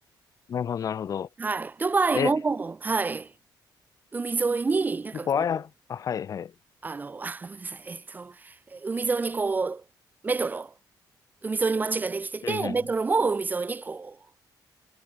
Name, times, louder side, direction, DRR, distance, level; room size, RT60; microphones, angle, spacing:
voice 1, 0.5-1.3 2.1-2.3 5.3-6.5 12.4-12.8, left 8 dB, 45° left, 2.2 m, -29 dB
voice 2, 1.4-3.3 4.1-5.4 6.8-9.8 10.2-10.7 11.4-14.2, right 4 dB, 20° right, 1.7 m, -28 dB
cardioid pair, 155°, 8 cm